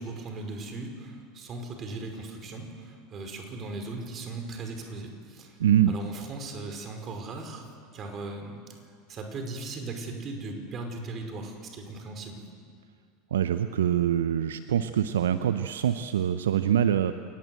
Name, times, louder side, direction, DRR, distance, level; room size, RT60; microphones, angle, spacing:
voice 1, 0.0-5.6 5.9-8.6 9.1-12.4, right 3 dB, 35° right, 4 dB, 5.1 m, -38 dB
voice 2, 5.6-5.9 13.3-17.1, right 10 dB, 70° right, 11 dB, 0.8 m, -24 dB
28.5 x 19.0 x 7.9 m, 2.1 s
figure-of-eight pair, 80°, 0 cm